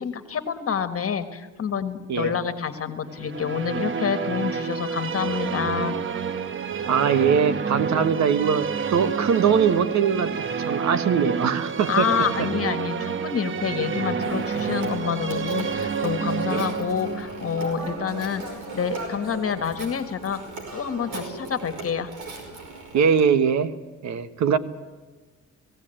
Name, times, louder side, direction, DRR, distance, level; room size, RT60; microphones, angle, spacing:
voice 1, 0.0-6.0 11.9-20.4 20.7-22.1, left 7 dB, 50° left, 9 dB, 1.6 m, -28 dB
sound 1, 3.1-19.2, right 6 dB, 40° right, 1.1 m, -29 dB
voice 2, 6.9-12.1 16.5-16.7 22.9-23.7 24.0-24.6, right 7 dB, 65° right, 12 dB, 1.4 m, -22 dB
Telephone, 14.2-23.3, right 3 dB, 80° right, 5.3 m, -37 dB
18.5 x 16.0 x 9.0 m, 1.3 s
cardioid pair, 90°, 30 cm